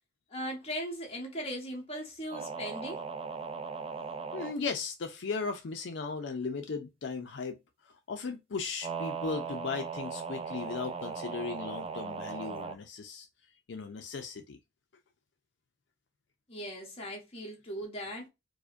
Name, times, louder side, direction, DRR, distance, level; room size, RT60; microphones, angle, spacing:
voice 1, 0.3-3.0 16.5-18.3, equal, 35° left, 1.4 m, -38 dB
sound 1, 2.3-4.6 8.8-12.7, right 5 dB, 30° right, 0.4 m, -38 dB
voice 2, 4.3-7.6 7.8-13.3 13.7-14.6, left 4 dB, 75° left, 0.5 m, -37 dB
4.7 x 2.1 x 2.5 m
head